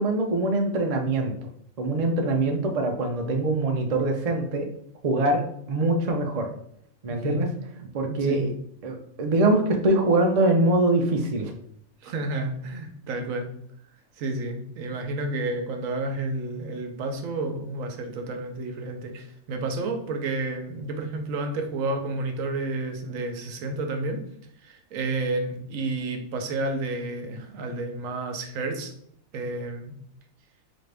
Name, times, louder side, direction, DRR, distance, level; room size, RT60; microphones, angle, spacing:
voice 1, 0.0-1.5 1.8-4.7 5.0-6.5 7.0-7.5 7.9-8.5 8.8-11.5, right 2 dB, 60° right, 3 dB, 0.4 m, -23 dB
voice 2, 7.1-7.5 8.1-8.5 12.0-13.5 14.2-24.2 24.6-28.9 29.3-29.9, right 2 dB, 80° right, 5 dB, 1.1 m, -30 dB
4.0 x 2.5 x 3.3 m, 0.68 s
omnidirectional pair, 1.4 m